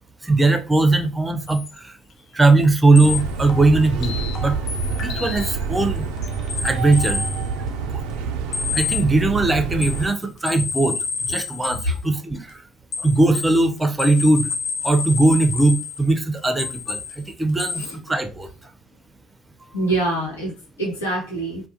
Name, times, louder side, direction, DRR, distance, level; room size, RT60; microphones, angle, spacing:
voice 1, 0.2-2.0 2.3-4.6 5.0-6.1 6.6-7.3 7.9-8.0 8.7-12.7 13.0-14.5 14.8-18.7, right 2 dB, 15° right, 0.5 m, -19 dB
sound 1, 1.5-1.8 2.6-2.7 2.9-5.6 6.0-7.5 8.5-9.1 9.8-12.0 12.9-16.1 16.6-17.2 17.6-18.0, left 5 dB, 55° left, 0.4 m, -29 dB
sound 2, 3.0-10.1, right 5 dB, 70° right, 0.3 m, -27 dB
voice 2, 19.7-21.7, right 2 dB, 85° left, 1.1 m, -25 dB
2.4 x 2.2 x 2.7 m
hypercardioid pair, 55°, 0 cm